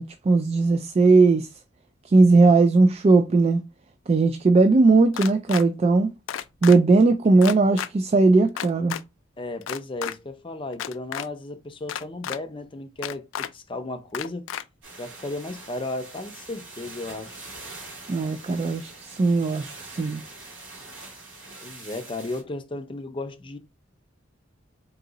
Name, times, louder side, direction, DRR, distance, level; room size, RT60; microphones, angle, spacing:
voice 1, 0.0-1.5 2.1-3.6 4.1-6.1 6.6-9.0 18.1-20.2, right 3 dB, 35° right, 0.3 m, -18 dB
sound 1, 5.1-5.6 6.3-6.8 7.4-7.9 8.6-9.0 9.6-10.1 10.7-11.3 11.9-12.4 13.0-13.5 14.1-14.6, left 10 dB, 80° left, 0.3 m, -31 dB
voice 2, 9.4-14.5 15.0-17.4 21.6-23.6, left 2 dB, 25° left, 0.5 m, -34 dB
sound 2, 14.8-22.4, right 2 dB, 90° right, 2.2 m, -43 dB
3.9 x 2.7 x 3.8 m
head